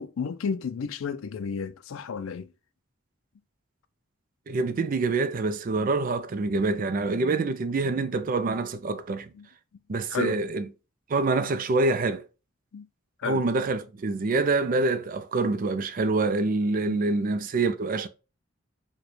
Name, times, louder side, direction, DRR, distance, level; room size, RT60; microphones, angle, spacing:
voice 1, 0.0-2.5 9.3-9.5 10.1-10.4 11.4-11.5 12.7-12.9 13.2-13.5 16.9-17.1, left 6 dB, 80° left, 0.4 m, -32 dB
voice 2, 4.5-9.3 9.9-10.7 11.1-12.2 13.2-18.1, right 3 dB, 45° right, 0.4 m, -26 dB
4.9 x 2.2 x 3.1 m
head